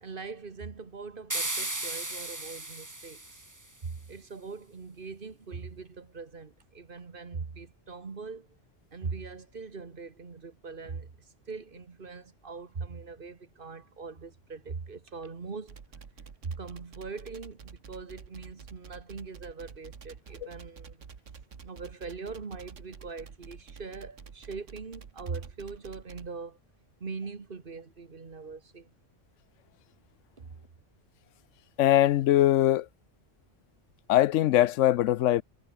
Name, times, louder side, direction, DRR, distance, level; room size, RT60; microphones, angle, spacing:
voice 1, 0.0-3.4 3.8-8.5 8.9-11.1 11.5-15.8 16.4-21.0 21.6-26.6 27.0-28.9 30.4-30.6, right 4 dB, 45° right, 1.6 m, -41 dB
sound 1, 1.3-3.7, right 2 dB, 15° right, 1.5 m, -35 dB
sound 2, 15.7-26.3, right 6 dB, 85° right, 1.9 m, -48 dB
voice 2, 31.8-32.9 34.1-35.4, left 13 dB, 85° left, 0.9 m, -22 dB
omnidirectional pair, 1.3 m